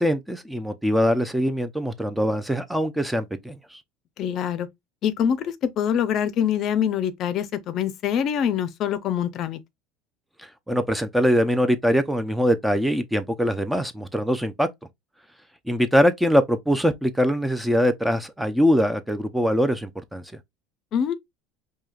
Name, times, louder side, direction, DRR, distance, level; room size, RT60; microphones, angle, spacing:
voice 1, 0.0-3.8 10.4-14.7 15.7-20.2, equal, 5° right, 0.5 m, -22 dB
voice 2, 4.2-4.7 5.0-9.6 20.9-21.1, left 8 dB, 45° left, 0.5 m, -24 dB
4.8 x 2.8 x 2.3 m
supercardioid pair, 130°, 0 cm